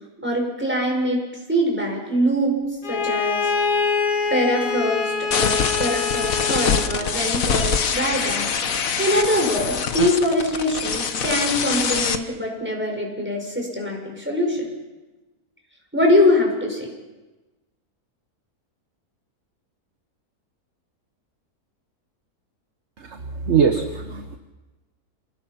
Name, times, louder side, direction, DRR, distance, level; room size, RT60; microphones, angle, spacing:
voice 1, 0.2-1.2 1.5-2.6 2.9-3.5 4.3-8.5 8.8-14.7 15.9-16.9, left 1 dB, 5° right, 0 dB, 5.5 m, -23 dB
Bowed string instrument, 2.8-7.0, left 5 dB, 85° left, 2.0 m, -24 dB
sound 1, 5.3-12.2, left 6 dB, 60° left, 1.5 m, -24 dB
voice 2, 23.0-24.4, right 6 dB, 50° right, 6 dB, 1.4 m, -22 dB
28.0 x 19.0 x 5.9 m, 1.2 s
omnidirectional pair, 1.7 m